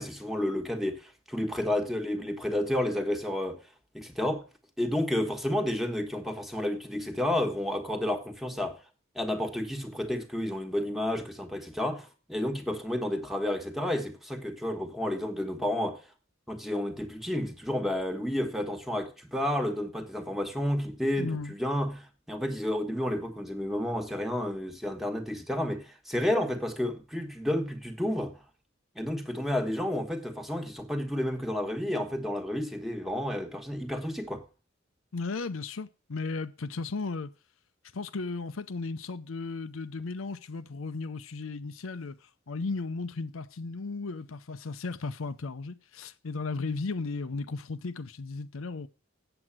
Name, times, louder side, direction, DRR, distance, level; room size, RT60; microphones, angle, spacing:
voice 1, 0.0-3.6 3.9-4.4 4.8-8.8 9.1-16.0 16.5-28.4 28.9-34.4, left 1 dB, ahead, 1.4 m, -31 dB
voice 2, 21.2-21.5 35.1-37.3 37.9-48.9, left 3 dB, 80° left, 0.7 m, -35 dB
7.9 x 7.8 x 7.3 m
head